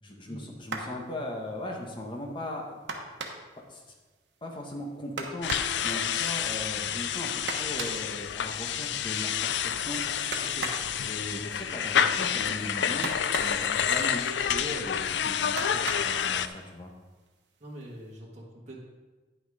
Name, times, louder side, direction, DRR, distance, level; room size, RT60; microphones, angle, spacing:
voice 1, 0.0-2.8 3.7-3.8 4.4-10.0 11.0-13.1 13.4-16.9, left 1 dB, 25° left, 0 dB, 1.5 m, -38 dB
sound 1, 0.6-1.0 2.9-3.6 5.2-5.8 7.5-8.0 10.3-10.9 13.0-13.7 15.6-16.2 17.3-17.4 17.8-18.0, right 3 dB, 75° right, 1.2 m, -36 dB
sound 2, 5.4-16.5, left 8 dB, 75° left, 0.4 m, -29 dB
voice 2, 10.4-10.7 17.6-18.8, right 1 dB, 40° right, -4 dB, 1.8 m, -44 dB
10.0 x 6.2 x 4.9 m, 1.3 s
head